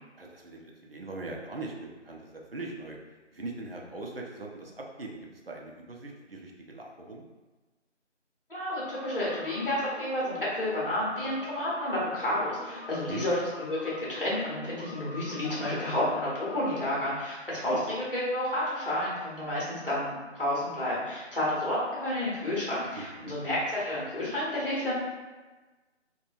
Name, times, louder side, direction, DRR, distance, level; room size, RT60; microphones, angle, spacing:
voice 1, 0.2-3.0 3.3-5.1 5.5-7.2 13.1-13.2 17.7-17.8 22.9-23.3, right 2 dB, 55° right, 0 dB, 0.4 m, -40 dB
voice 2, 8.5-24.9, left 1 dB, 50° left, -7 dB, 1.1 m, -30 dB
sound 1, 8.7-16.8, left 3 dB, 70° left, 0.5 m, -44 dB
2.9 x 2.2 x 2.6 m, 1.2 s
figure-of-eight pair, 175°, 36 cm